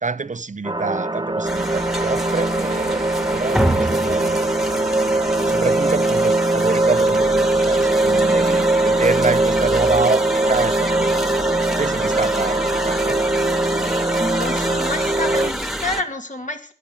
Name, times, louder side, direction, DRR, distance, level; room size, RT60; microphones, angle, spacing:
voice 1, 0.0-4.5 5.5-11.1 11.4-11.5 11.8-13.2, right 4 dB, 60° right, 0.5 m, -27 dB
sound 1, 0.6-15.5, right 2 dB, 30° right, 1.0 m, -20 dB
sound 2, 1.4-16.0, equal, ahead, 1.5 m, -28 dB
voice 2, 14.2-16.7, left 2 dB, 60° left, 2.4 m, -28 dB
12.5 x 8.7 x 8.0 m
wide cardioid pair, 50°, 15 cm